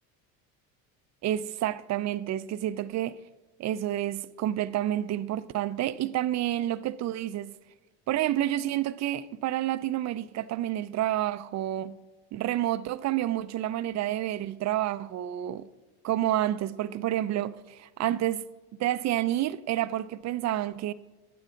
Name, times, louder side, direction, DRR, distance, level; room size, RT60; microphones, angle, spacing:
voice 1, 1.2-3.2 3.6-7.5 8.1-12.0 12.3-15.7 16.0-18.4 18.8-20.9, right 13 dB, 40° right, 0.5 m, -29 dB
12.0 x 8.6 x 3.8 m
supercardioid pair, 95°, 45 cm